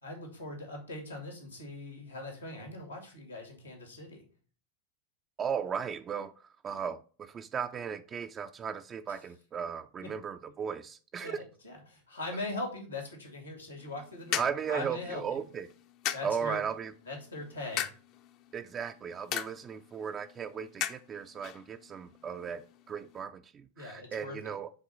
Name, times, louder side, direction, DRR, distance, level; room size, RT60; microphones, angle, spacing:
voice 1, 0.0-4.2 9.1-9.2 10.0-10.1 11.2-15.4 16.1-16.6 17.1-17.9 23.8-24.6, left 2 dB, 85° left, 1 dB, 2.4 m, -41 dB
voice 2, 5.4-6.3 6.6-11.4 14.3-15.7 16.2-16.9 18.5-24.7, right 7 dB, 25° right, 7 dB, 0.4 m, -36 dB
sound 1, 13.8-23.2, left 11 dB, 40° left, 0.6 m, -41 dB
7.4 x 3.6 x 5.6 m, 0.39 s
figure-of-eight pair, 90°, 0 cm